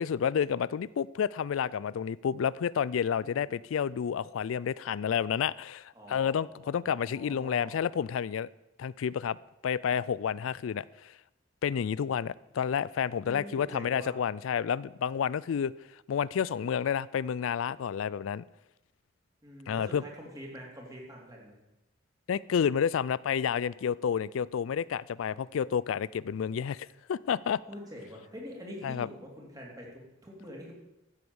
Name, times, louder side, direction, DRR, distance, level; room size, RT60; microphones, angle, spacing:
voice 1, 0.0-8.5 8.8-9.4 9.6-11.1 11.6-15.7 16.1-18.4 19.7-20.0 22.3-27.6 28.8-29.1, left 7 dB, 85° left, 0.4 m, -30 dB
voice 2, 3.2-3.6 5.9-7.8 13.2-14.1 19.4-21.6 27.7-30.8, equal, 20° right, 3.5 m, -45 dB
14.5 x 8.0 x 7.1 m
head